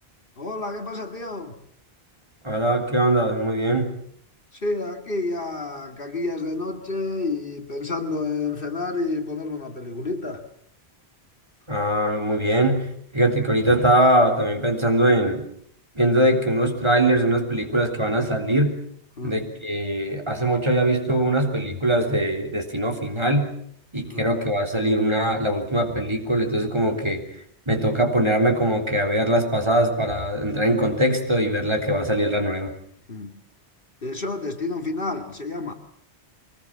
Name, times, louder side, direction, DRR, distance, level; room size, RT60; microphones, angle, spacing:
voice 1, 0.4-1.6 4.5-10.4 19.2-19.4 24.1-24.3 33.1-33.4 34.0-35.7, left 3 dB, 55° left, 4 dB, 2.4 m, -29 dB
voice 2, 2.4-3.9 11.7-15.4 16.0-18.8 19.2-23.5 23.9-27.2 27.7-32.7, right 1 dB, 25° right, 3 dB, 3.6 m, -22 dB
24.0 x 20.5 x 7.3 m, 0.67 s
omnidirectional pair, 1.1 m